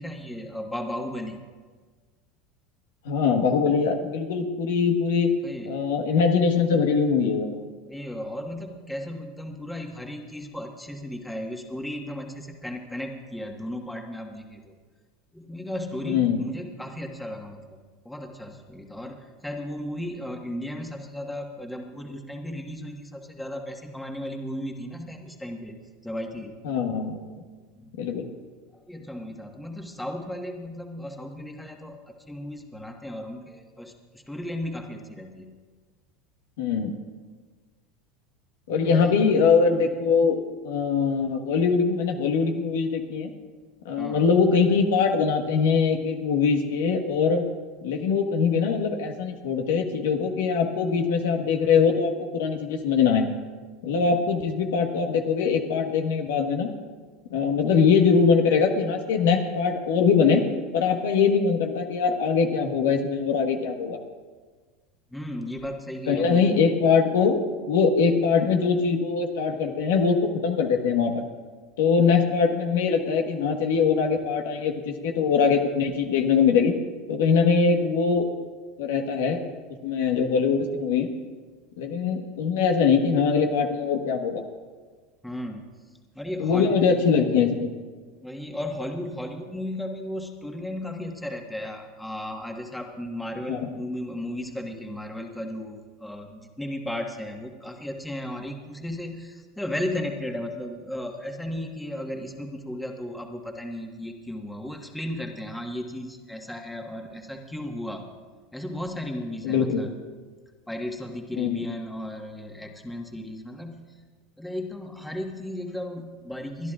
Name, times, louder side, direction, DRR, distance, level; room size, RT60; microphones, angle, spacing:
voice 1, 0.0-1.4 5.4-5.8 7.9-14.7 15.3-17.8 18.0-26.6 27.7-28.0 28.7-35.5 38.9-39.2 44.0-44.3 65.1-66.4 85.2-85.7 86.1-87.0 88.2-108.1 108.5-109.9 110.7-114.0 114.4-116.7, left 1 dB, 5° left, 2 dB, 1.5 m, -35 dB
voice 2, 3.0-5.3 5.7-7.6 16.1-16.4 26.6-27.2 28.0-28.2 36.6-36.9 38.7-40.4 40.6-43.3 43.8-47.4 47.8-53.3 53.8-56.7 57.3-60.4 60.7-64.0 66.1-67.4 67.7-71.2 71.8-76.7 77.1-78.3 78.8-79.4 79.8-81.1 81.8-84.4 86.4-87.7 93.5-93.6 109.4-109.8 111.4-111.6, left 5 dB, 80° left, 3 dB, 1.4 m, -22 dB
29.5 x 10.5 x 2.5 m, 1.5 s
supercardioid pair, 105°, 0 cm